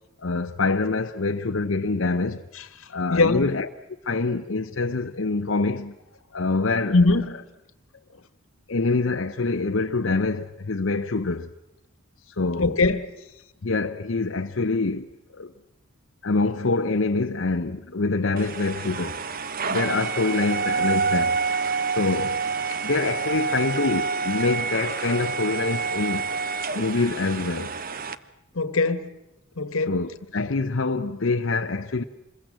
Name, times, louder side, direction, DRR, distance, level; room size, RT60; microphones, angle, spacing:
voice 1, 0.2-2.4 2.9-3.7 4.0-5.9 6.3-7.0 8.7-11.5 12.3-12.8 13.6-15.1 15.3-15.5 16.2-19.2 19.7-21.4 21.9-22.4 22.8-26.2 26.7-27.7 29.9-32.0, left 3 dB, 65° left, 0.8 m, -25 dB
voice 2, 3.1-3.5 6.9-7.3 12.6-13.1 28.5-29.1 29.6-29.9, left 3 dB, 85° left, 1.5 m, -21 dB
sound 1, 18.4-28.2, right 5 dB, 45° right, 0.9 m, -28 dB
26.5 x 21.5 x 7.5 m
head